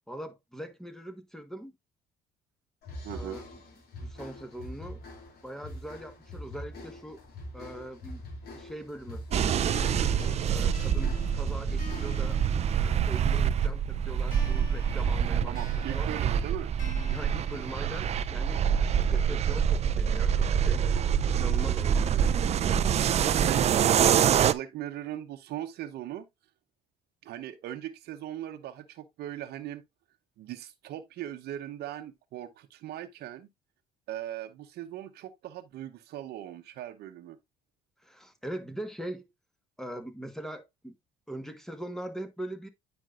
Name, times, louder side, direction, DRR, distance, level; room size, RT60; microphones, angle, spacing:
voice 1, 0.1-1.7 3.1-3.6 3.9-5.0 5.4-7.2 7.5-8.2 8.5-9.2 10.5-12.4 12.7-15.6 15.9-16.1 17.1-18.6 19.1-20.9 21.3-22.8 38.0-39.3 39.8-40.9 41.3-42.7, right 1 dB, 5° left, 1.3 m, -41 dB
sound 1, 2.8-12.4, left 1 dB, 65° left, 2.9 m, -43 dB
voice 2, 3.0-3.4 15.5-16.7 23.4-26.2 27.2-29.8 30.4-33.5 34.1-37.4, right 12 dB, 70° right, 0.9 m, -39 dB
sound 2, 9.3-24.5, right 8 dB, 40° right, 0.4 m, -26 dB
sound 3, 9.7-13.3 14.3-18.3, left 3 dB, 50° left, 4.8 m, -49 dB
9.3 x 5.2 x 2.4 m
cardioid pair, 110°, 17 cm